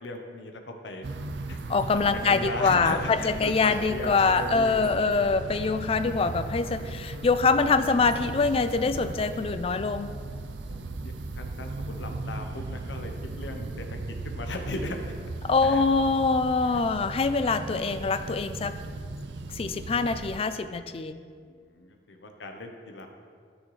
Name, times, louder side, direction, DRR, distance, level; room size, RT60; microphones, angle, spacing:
voice 1, 0.0-1.1 1.5-1.6 1.9-5.2 7.6-7.7 10.7-14.0 14.2-15.0 15.6-16.1 16.7-16.8 19.1-19.2 21.3-23.1, left 2 dB, 90° left, 4 dB, 0.9 m, -37 dB
sound 1, 1.0-20.4, right 2 dB, 75° right, 0.5 m, -37 dB
voice 2, 1.7-10.1 15.4-18.7 19.5-21.2, left 4 dB, 35° left, 10 dB, 0.3 m, -24 dB
Guitar, 1.8-9.2, equal, 15° left, 1.5 m, -47 dB
12.5 x 6.3 x 3.2 m, 2.1 s
head